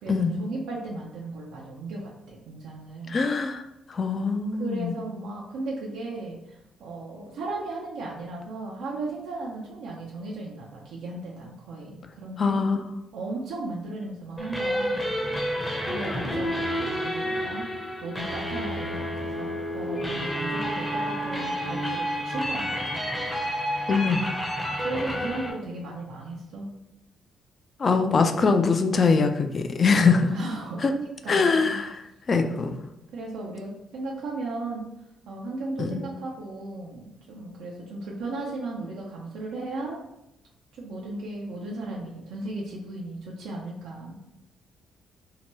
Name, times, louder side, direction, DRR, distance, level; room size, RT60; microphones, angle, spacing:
voice 1, 0.0-3.2 4.6-12.6 13.1-15.1 15.9-17.7 18.0-23.0 24.8-26.7 30.3-31.8 33.1-34.9 35.3-40.0 40.7-44.3, right 2 dB, 85° right, -3 dB, 0.5 m, -36 dB
voice 2, 3.1-3.6 3.9-4.9 12.4-12.8 23.9-24.2 27.8-30.3 30.8-30.9 31.3-32.0 32.3-32.7 35.8-36.0, left 4 dB, 40° left, 6 dB, 0.3 m, -22 dB
sound 1, 14.4-25.5, equal, 10° left, 0.6 m, -29 dB
2.8 x 2.2 x 3.0 m, 0.87 s
cardioid pair, 90°, 0 cm